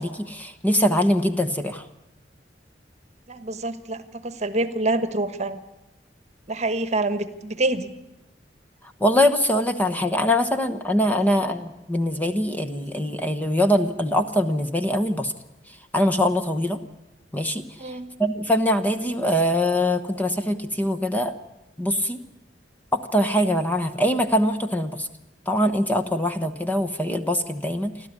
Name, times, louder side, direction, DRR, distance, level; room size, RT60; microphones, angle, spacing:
voice 1, 0.0-1.9 9.0-15.3 15.9-16.8 17.3-21.3 21.8-22.2 22.9-25.1 25.5-28.1, equal, 10° left, 7 dB, 1.0 m, -23 dB
voice 2, 3.3-5.6 6.5-7.9 17.8-18.1, right 2 dB, 40° right, 11 dB, 1.3 m, -26 dB
29.5 x 12.5 x 9.6 m, 0.97 s
head